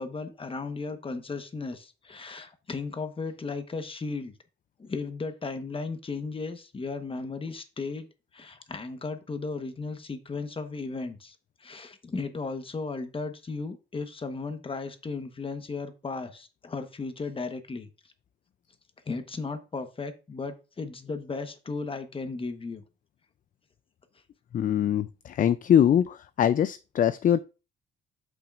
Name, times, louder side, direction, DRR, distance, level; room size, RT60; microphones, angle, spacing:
voice 1, 0.0-4.3 4.8-8.1 8.3-17.9 19.1-22.8, left 4 dB, 25° left, 1.1 m, -35 dB
voice 2, 24.5-27.4, left 9 dB, 40° left, 0.4 m, -23 dB
8.7 x 5.8 x 2.5 m
cardioid pair, 90°, 20 cm